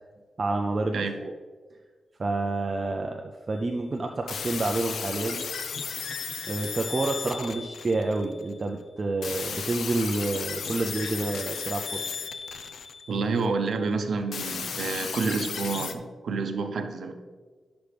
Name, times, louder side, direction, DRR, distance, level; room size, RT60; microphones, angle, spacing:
voice 1, 0.4-1.3 2.2-5.5 6.5-12.0, right 2 dB, 35° right, 2 dB, 0.5 m, -29 dB
sound 1, 4.3-8.5 9.2-13.5 14.3-15.9, left 6 dB, 85° left, 0.5 m, -35 dB
voice 2, 13.1-17.1, right 4 dB, 70° right, 6 dB, 0.8 m, -29 dB
11.5 x 6.0 x 3.4 m, 1.5 s
wide cardioid pair, 150°, 0 cm